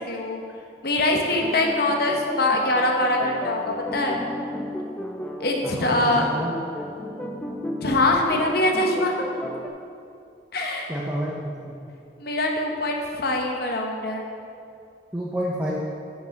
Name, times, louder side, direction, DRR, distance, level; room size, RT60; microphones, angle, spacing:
voice 1, 0.1-0.4 0.8-4.2 5.4-6.3 7.8-9.2 10.5-10.9 12.2-14.3, left 2 dB, 55° left, 1 dB, 1.0 m, -23 dB
sound 1, 1.4-9.7, left 1 dB, 5° left, 0.4 m, -33 dB
voice 2, 5.8-6.6 10.9-11.7 15.1-15.7, equal, 10° right, -6 dB, 0.8 m, -29 dB
6.4 x 6.1 x 7.1 m, 2.5 s
head